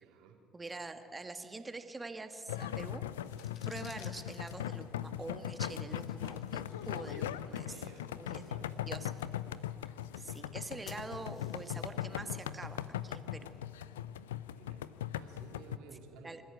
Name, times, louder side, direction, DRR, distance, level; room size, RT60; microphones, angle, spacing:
voice 1, 0.0-0.4 7.6-8.8 14.5-16.4, right 5 dB, 70° right, 1 dB, 3.6 m, -56 dB
voice 2, 0.5-3.1 3.7-7.8 8.1-8.6 8.9-9.1 9.8-13.5 16.2-16.4, right 3 dB, 20° right, 7 dB, 1.9 m, -45 dB
sound 1, 2.5-15.8, left 11 dB, 90° left, 0.6 m, -40 dB
sound 2, 3.2-14.0, left 5 dB, 50° left, 2.7 m, -61 dB
26.0 x 14.0 x 9.4 m, 3.0 s
hypercardioid pair, 60°, 0 cm